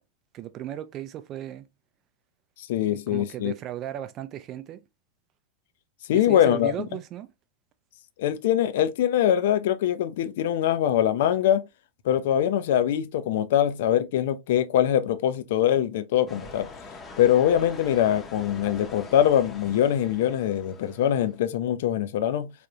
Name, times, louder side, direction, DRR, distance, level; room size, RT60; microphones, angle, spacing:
voice 1, 0.3-1.7 2.9-4.8 6.1-7.3, right 12 dB, 35° right, 0.4 m, -36 dB
voice 2, 2.6-3.5 6.1-6.7 8.2-11.7 12.0-16.7 17.2-22.5, left 10 dB, 55° left, 0.4 m, -23 dB
sound 1, 16.3-21.4, left 3 dB, 20° left, 0.7 m, -44 dB
3.4 x 2.4 x 2.8 m
figure-of-eight pair, 90°, 0 cm